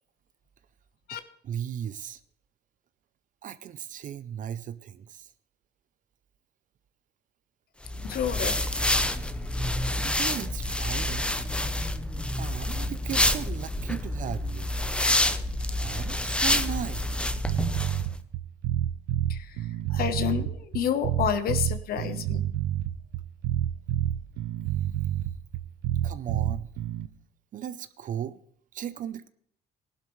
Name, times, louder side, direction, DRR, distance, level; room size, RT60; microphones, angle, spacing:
voice 1, 1.4-2.2 3.4-5.3 10.0-11.3 12.4-14.7 15.8-17.1 26.0-26.7 27.5-28.4 28.7-29.3, right 9 dB, 50° right, 13 dB, 0.6 m, -36 dB
sound 1, 7.8-18.0, left 1 dB, 5° left, 0.8 m, -28 dB
voice 2, 8.0-8.6 19.3-22.5, left 9 dB, 65° left, 9 dB, 1.1 m, -30 dB
sound 2, 17.5-27.1, right 12 dB, 85° right, 0.8 m, -28 dB
16.5 x 11.5 x 3.2 m, 0.67 s
cardioid pair, 110°, 17 cm